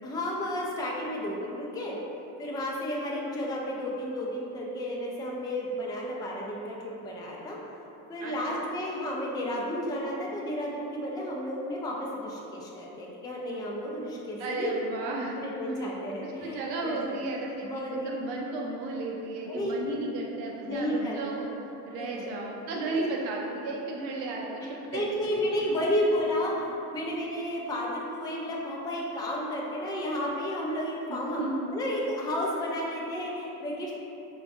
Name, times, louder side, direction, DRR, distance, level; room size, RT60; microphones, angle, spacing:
voice 1, 0.0-2.0 2.4-7.8 8.1-14.7 15.3-17.2 17.6-18.1 19.5-19.7 20.7-21.2 21.9-22.3 22.9-23.0 24.9-31.4 31.7-33.9, left 1 dB, 10° left, -3 dB, 0.3 m, -32 dB
voice 2, 8.2-8.6 14.4-15.4 16.2-25.4 26.6-26.7 31.1-31.7, right 2 dB, 80° right, -2 dB, 0.7 m, -34 dB
3.7 x 2.4 x 2.5 m, 2.9 s
hypercardioid pair, 60°, 50 cm